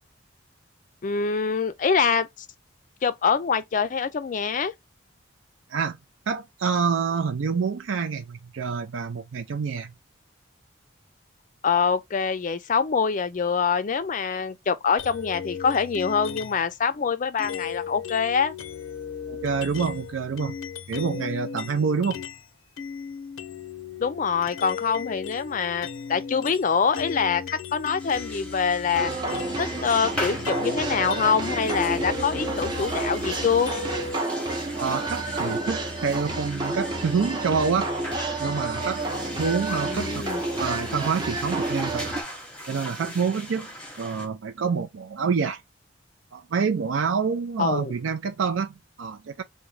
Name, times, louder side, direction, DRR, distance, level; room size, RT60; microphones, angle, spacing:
voice 1, 1.0-2.3 3.0-4.7 11.6-18.5 24.0-29.1 29.6-33.7 39.8-40.4 47.6-47.9, left 6 dB, 40° left, 0.4 m, -25 dB
voice 2, 6.3-9.9 19.3-20.6 20.9-22.2 34.8-37.9 38.4-40.2 40.6-42.2 42.7-43.7 44.0-45.6 46.3-49.4, right 5 dB, 75° right, 0.4 m, -27 dB
sound 1, 15.0-16.7 17.4-22.5 22.8-34.2, left 6 dB, 90° left, 0.5 m, -36 dB
sound 2, 28.0-44.3, equal, 5° left, 0.8 m, -39 dB
sound 3, 28.9-42.2, right 2 dB, 20° right, 0.6 m, -30 dB
3.6 x 2.2 x 3.1 m
head